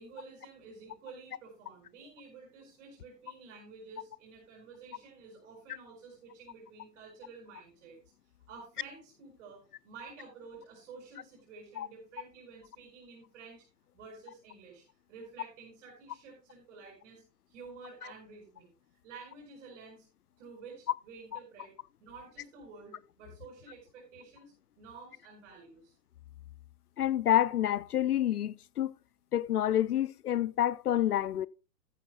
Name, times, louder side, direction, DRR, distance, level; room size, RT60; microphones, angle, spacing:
voice 1, 0.0-8.0 8.5-13.6 13.9-14.8 15.1-20.1 20.4-21.7 22.0-25.9, right 4 dB, 45° right, 6.1 m, -51 dB
voice 2, 27.0-28.9 29.3-31.5, left 11 dB, 65° left, 0.6 m, -28 dB
14.5 x 13.0 x 2.2 m
figure-of-eight pair, 115°, 49 cm